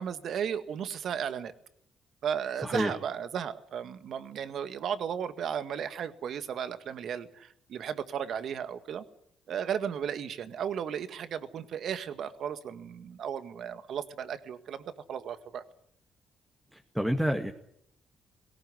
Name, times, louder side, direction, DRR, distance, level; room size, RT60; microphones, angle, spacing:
voice 1, 0.0-1.5 2.2-9.0 9.5-15.6, right 8 dB, 65° right, 12 dB, 1.8 m, -35 dB
voice 2, 2.6-2.9 16.7-17.5, equal, 5° right, 5 dB, 1.9 m, -28 dB
18.0 x 17.5 x 9.8 m, 0.71 s
cardioid pair, 90°, 0 cm